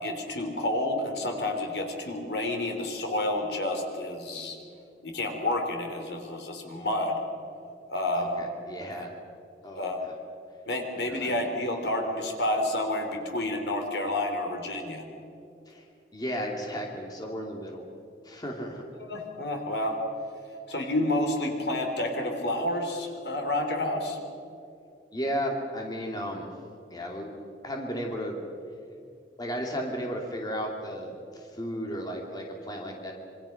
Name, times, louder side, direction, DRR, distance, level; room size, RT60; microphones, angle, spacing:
voice 1, 0.0-4.6 5.0-7.2 7.9-8.4 9.0-9.1 9.8-10.0 10.7-15.1 19.0-20.0 20.7-24.2, left 1 dB, 70° left, 4 dB, 3.5 m, -29 dB
voice 2, 8.1-9.1 9.6-10.1 11.1-11.5 15.7-15.8 16.1-17.8 18.2-18.8 25.1-26.5 26.9-27.4 27.6-28.4 29.4-33.1, equal, 25° left, 1 dB, 2.7 m, -34 dB
26.5 x 24.5 x 5.9 m, 2.6 s
head